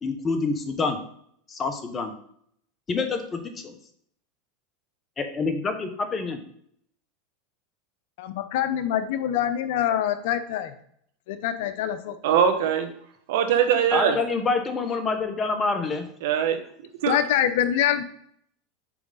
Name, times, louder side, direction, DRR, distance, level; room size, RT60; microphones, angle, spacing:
voice 1, 0.0-1.0 1.5-2.1 2.9-3.7 5.2-6.4 13.9-16.1, left 4 dB, 25° left, 7 dB, 1.1 m, -27 dB
voice 2, 8.2-10.7 11.3-12.2 17.1-18.0, left 10 dB, 70° left, 11 dB, 0.7 m, -25 dB
voice 3, 12.2-12.9 13.3-14.2 16.2-16.6 17.0-17.2, right 8 dB, 75° right, 7 dB, 1.0 m, -21 dB
5.9 x 4.8 x 4.0 m, 0.66 s
supercardioid pair, 110°, 0 cm